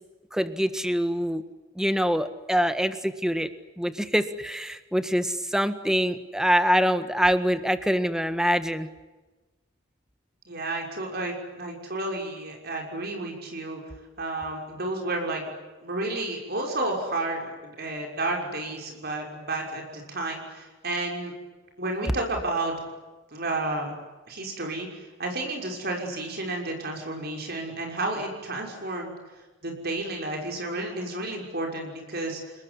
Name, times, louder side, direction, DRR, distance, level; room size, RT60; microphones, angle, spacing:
voice 1, 0.3-1.4 1.7-3.5 3.8-8.9, equal, 5° right, 10 dB, 1.6 m, -25 dB
voice 2, 10.5-13.8 14.2-15.5 15.8-21.3 21.8-22.8 23.3-23.9 24.2-29.1 29.6-32.4, right 2 dB, 55° right, 1 dB, 6.1 m, -31 dB
30.0 x 20.0 x 9.9 m, 1.2 s
head